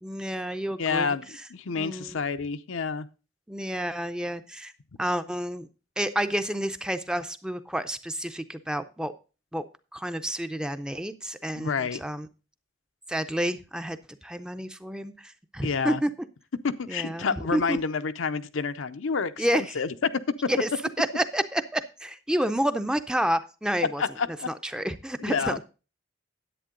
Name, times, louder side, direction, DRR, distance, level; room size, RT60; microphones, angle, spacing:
voice 1, 0.0-1.2 1.8-2.2 3.5-4.7 5.0-5.7 6.0-9.1 9.5-9.6 9.9-12.3 13.1-16.1 16.9-17.8 19.4-19.8 20.5-20.7 21.0-24.0 24.5-25.6, equal, 5° right, 10 dB, 0.4 m, -29 dB
voice 2, 0.8-3.1 11.6-12.0 15.6-16.0 16.8-19.9 24.0-24.5 25.2-25.6, left 5 dB, 80° left, 10 dB, 0.6 m, -29 dB
10.0 x 8.4 x 3.8 m, 0.32 s
head